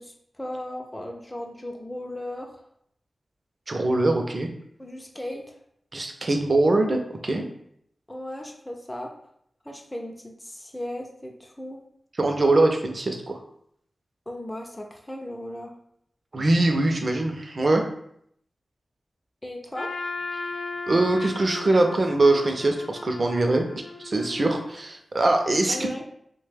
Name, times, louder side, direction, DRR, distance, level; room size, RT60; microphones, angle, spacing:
voice 1, 0.0-2.5 4.8-5.5 8.1-9.1 9.6-11.9 14.3-15.7 19.4-19.9 25.7-26.0, left 1 dB, 15° left, 1 dB, 0.4 m, -36 dB
voice 2, 3.7-4.5 5.9-7.4 12.2-13.3 16.3-17.8 20.9-23.7 24.0-25.8, right 2 dB, 50° right, 3 dB, 0.5 m, -22 dB
Trumpet, 19.7-24.8, left 3 dB, 85° left, 0.3 m, -36 dB
3.1 x 2.2 x 3.3 m, 0.70 s
cardioid pair, 55°, 0 cm